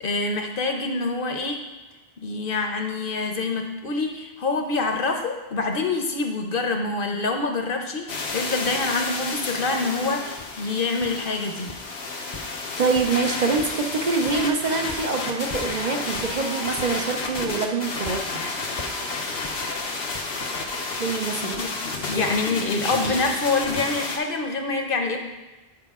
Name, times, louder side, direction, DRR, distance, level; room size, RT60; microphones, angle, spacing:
voice 1, 0.0-1.6 2.2-11.7 21.4-25.2, left 3 dB, 60° left, 4 dB, 1.0 m, -26 dB
sound 1, 8.1-24.2, left 3 dB, 85° left, 1.1 m, -31 dB
sound 2, 10.4-10.5 11.0-11.3 11.7-11.9 12.3-13.2 13.6-13.8 14.2-14.5 14.9-15.1 15.5-15.8 16.1-16.4 16.8-17.0 17.4-17.7 18.0-18.2 18.8-19.0 19.4-19.6 20.1-20.3, left 3 dB, 35° left, 0.7 m, -40 dB
voice 2, 12.1-18.4 21.0-21.7, right 4 dB, 50° right, 3 dB, 0.7 m, -25 dB
9.6 x 4.7 x 3.6 m, 1.1 s
omnidirectional pair, 1.0 m